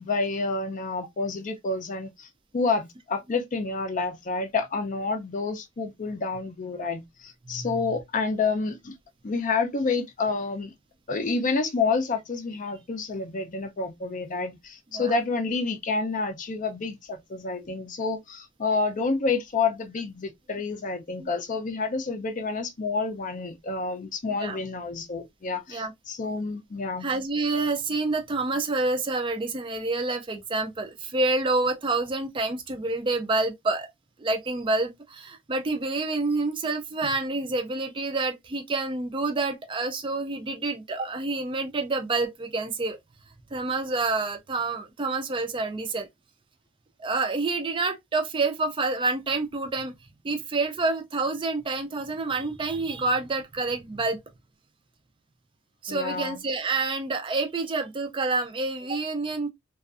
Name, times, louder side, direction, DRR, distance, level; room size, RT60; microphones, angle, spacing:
voice 1, 0.0-2.3 2.5-9.0 9.2-10.7 11.1-27.1 55.9-56.4, left 4 dB, 40° left, 0.5 m, -29 dB
voice 2, 27.0-33.9 34.2-43.0 43.5-46.1 47.0-49.9 50.2-54.2 55.8-59.5, right 3 dB, 25° right, 0.4 m, -28 dB
2.5 x 2.3 x 2.4 m
head